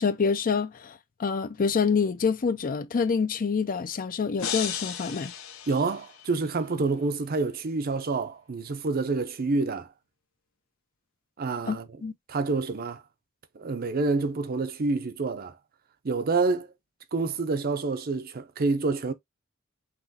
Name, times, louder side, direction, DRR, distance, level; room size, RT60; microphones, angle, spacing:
voice 1, 0.0-5.3 11.7-12.1, left 5 dB, 40° left, 0.5 m, -27 dB
sound 1, 4.4-6.5, left 8 dB, 75° left, 0.8 m, -35 dB
voice 2, 5.7-9.9 11.4-11.9 12.3-13.0 13.6-15.6 16.0-16.7 17.1-19.1, right 3 dB, 45° right, 0.6 m, -27 dB
5.9 x 2.9 x 2.7 m
head